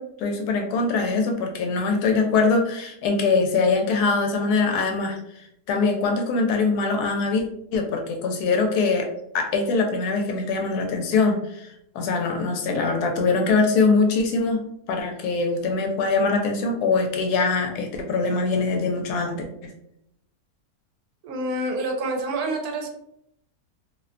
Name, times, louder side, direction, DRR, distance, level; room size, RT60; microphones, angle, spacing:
voice 1, 0.0-5.2 5.7-7.4 7.7-9.1 9.3-11.7 11.9-14.6 14.9-19.7, left 4 dB, 85° left, 3 dB, 1.1 m, -23 dB
voice 2, 21.2-22.9, right 2 dB, 80° right, 3 dB, 1.1 m, -27 dB
2.7 x 2.1 x 2.4 m, 0.78 s
omnidirectional pair, 1.6 m